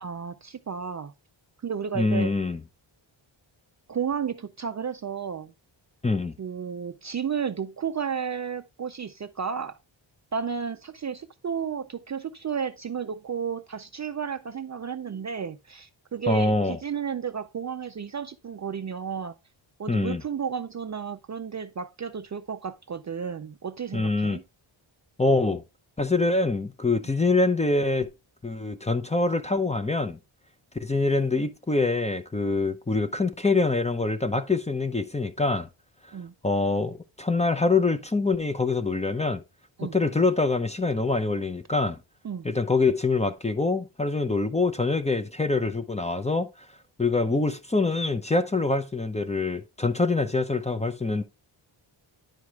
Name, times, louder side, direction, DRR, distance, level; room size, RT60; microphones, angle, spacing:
voice 1, 0.0-1.1 1.6-2.3 3.9-5.5 6.4-9.8 10.3-19.4 19.8-24.4 36.1-36.3 39.8-40.0 42.2-42.5, right 7 dB, 40° right, 0.4 m, -32 dB
voice 2, 1.9-2.6 6.0-6.4 16.3-16.8 19.9-20.2 23.9-24.4 25.2-25.6 26.0-28.1 28.4-30.2 30.8-35.7 36.4-39.4 39.8-42.0 42.4-46.5 47.0-51.2, left 3 dB, 15° left, 0.6 m, -25 dB
10.5 x 4.8 x 3.5 m
wide cardioid pair, 170°, 48 cm